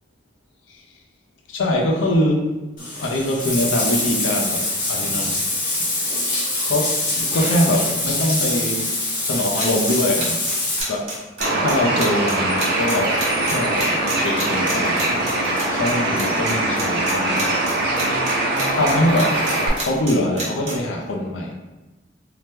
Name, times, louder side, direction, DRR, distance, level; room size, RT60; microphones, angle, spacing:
voice 1, 1.5-2.5 3.0-5.4 5.8-6.1 6.7-8.9 9.2-10.4 10.9-11.1 11.5-15.1 15.7-17.6 18.7-19.4 19.8-21.5, left 1 dB, 85° left, 0 dB, 0.5 m, -23 dB
Bathtub (filling or washing), 2.8-10.8, left 2 dB, 45° left, 0.9 m, -24 dB
sound 1, 9.6-15.9 16.2-16.5 16.8-18.3 18.6-20.7, right 3 dB, 35° right, 1.0 m, -29 dB
Bird, 11.4-19.7, right 1 dB, 60° right, 0.6 m, -22 dB
2.8 x 2.1 x 3.3 m, 1.1 s
head